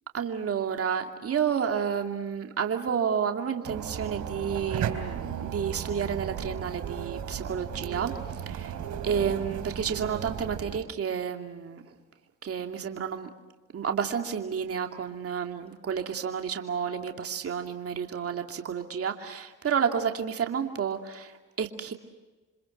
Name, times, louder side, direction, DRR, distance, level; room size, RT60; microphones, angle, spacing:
voice 1, 0.1-8.2 8.5-8.8 9.0-11.8 12.4-13.3 13.7-21.9, right 7 dB, 50° right, 4 dB, 2.6 m, -30 dB
sound 1, 3.6-10.8, right 8 dB, 75° right, 3.8 m, -35 dB
28.5 x 26.5 x 6.6 m, 1.2 s
cardioid pair, 90°, 30 cm